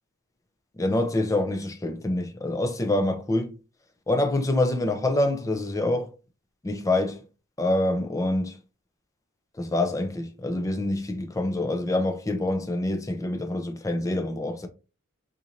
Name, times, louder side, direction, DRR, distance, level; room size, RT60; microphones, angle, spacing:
voice 1, 0.8-3.5 4.1-6.1 6.6-7.2 7.6-8.6 9.6-14.7, left 1 dB, 15° left, 0.5 m, -26 dB
3.9 x 2.6 x 2.9 m
head